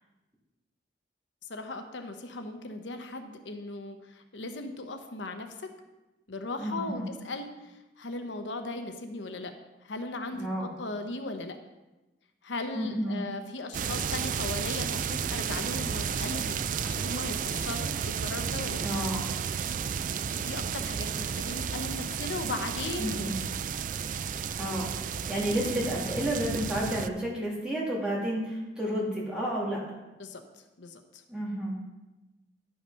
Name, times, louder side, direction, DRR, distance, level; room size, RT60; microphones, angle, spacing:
voice 1, 1.5-5.5 6.3-9.5 9.8-11.6 12.4-18.9 20.3-23.3 30.2-30.4 30.8-31.2, left 2 dB, 85° left, 7 dB, 0.8 m, -38 dB
voice 2, 6.6-7.1 10.3-10.7 12.7-13.2 18.8-19.2 23.0-23.4 24.6-24.9 25.3-29.8 31.3-31.8, equal, 5° right, -5 dB, 2.6 m, -31 dB
sound 1, 13.7-27.1, right 7 dB, 45° right, 0.3 m, -32 dB
10.5 x 5.7 x 5.6 m, 1.1 s
head